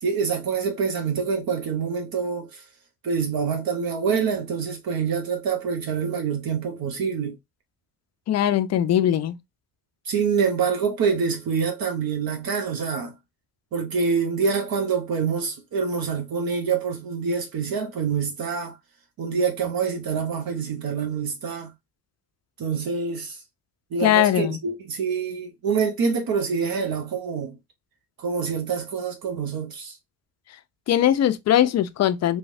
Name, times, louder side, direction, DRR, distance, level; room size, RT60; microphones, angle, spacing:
voice 1, 0.0-2.6 3.0-7.4 10.0-13.1 13.7-18.7 19.2-21.7 22.6-23.4 23.9-27.6 28.2-30.0, right 6 dB, 55° right, 0.9 m, -26 dB
voice 2, 8.3-9.3 24.0-24.6 30.9-32.4, left 11 dB, 40° left, 0.4 m, -20 dB
3.1 x 2.0 x 2.6 m
hypercardioid pair, 50°, 44 cm